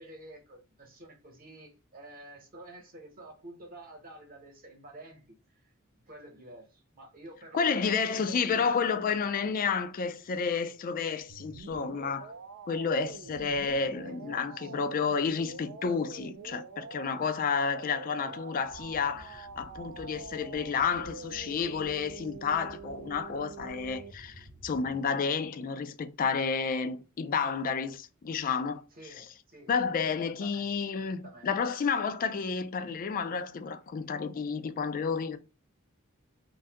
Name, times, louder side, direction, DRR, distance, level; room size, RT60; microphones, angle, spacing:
voice 1, 0.0-5.4 5.6-9.2 13.5-13.7 14.0-14.7 18.2-18.4 28.9-30.7 31.0-31.5, right 1 dB, 45° right, 1.0 m, -50 dB
voice 2, 7.5-12.3 12.7-28.8 29.2-29.3 29.7-35.4, left 5 dB, 40° left, 0.3 m, -31 dB
sound 1, 11.3-24.1, right 5 dB, 60° right, 0.4 m, -46 dB
sound 2, 18.6-25.0, equal, 15° right, 0.6 m, -53 dB
2.6 x 2.3 x 3.3 m
head